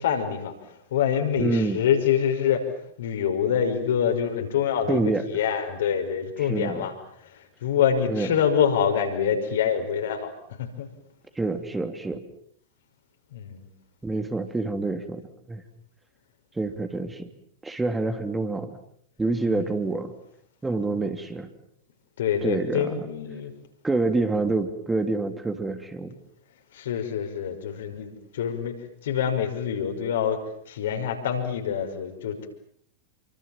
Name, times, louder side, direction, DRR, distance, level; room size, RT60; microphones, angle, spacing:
voice 1, 0.0-2.7 3.0-6.9 7.2-10.3 10.6-10.9 13.3-13.7 19.5-19.8 22.2-23.5 26.7-32.5, left 8 dB, 60° left, 6 dB, 5.9 m, -26 dB
voice 2, 1.4-1.8 4.9-5.2 6.4-6.9 8.1-8.3 11.4-12.2 14.0-15.2 15.5-15.6 16.5-17.3 17.6-18.8 19.2-20.1 20.6-21.5 22.4-23.1 23.8-26.1, right 3 dB, 10° right, 7 dB, 3.0 m, -27 dB
30.0 x 25.0 x 7.5 m, 0.69 s
figure-of-eight pair, 90°, 0 cm